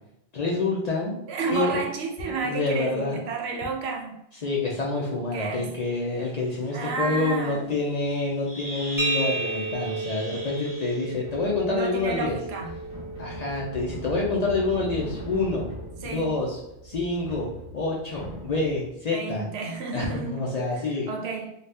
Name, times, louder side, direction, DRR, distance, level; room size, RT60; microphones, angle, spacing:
voice 1, 0.3-1.2 1.5-1.8 2.4-3.2 4.4-12.4 13.2-15.7 16.0-16.6 16.8-17.5 17.7-19.4 19.9-21.1, left 3 dB, 50° left, -3 dB, 0.5 m, -27 dB
voice 2, 1.3-4.2 5.3-5.7 6.7-7.6 11.7-12.8 16.0-16.3 19.1-20.6 21.1-21.5, right 4 dB, 75° right, 3 dB, 0.8 m, -31 dB
sound 1, 5.9-6.0 6.5-6.7 8.1-8.2 8.5-11.1, equal, 25° left, 0.9 m, -39 dB
sound 2, 9.0-16.5, right 2 dB, 10° right, 0.8 m, -34 dB
sound 3, 11.2-18.9, left 1 dB, 40° right, 0.9 m, -40 dB
2.7 x 2.3 x 3.3 m, 0.81 s
omnidirectional pair, 1.1 m